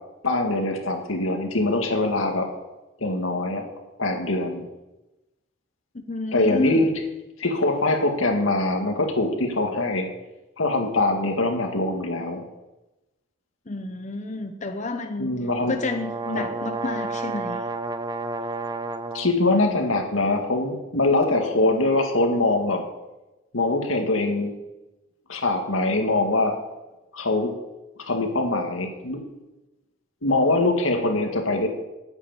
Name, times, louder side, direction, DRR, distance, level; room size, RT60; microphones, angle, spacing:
voice 1, 0.2-2.5 3.0-3.7 4.0-4.7 6.3-6.9 7.4-10.1 10.6-12.4 15.2-15.7 16.3-16.5 19.1-22.9 23.5-24.5 25.3-26.6 27.1-27.5 28.1-29.2 30.2-31.7, left 2 dB, 90° left, 4 dB, 2.0 m, -23 dB
voice 2, 5.9-6.9 13.7-15.3 15.7-17.6, left 2 dB, 35° left, 6 dB, 0.8 m, -30 dB
sound 1, 15.5-19.4, right 3 dB, 20° right, 0.6 m, -31 dB
9.7 x 8.2 x 8.8 m, 1.0 s
head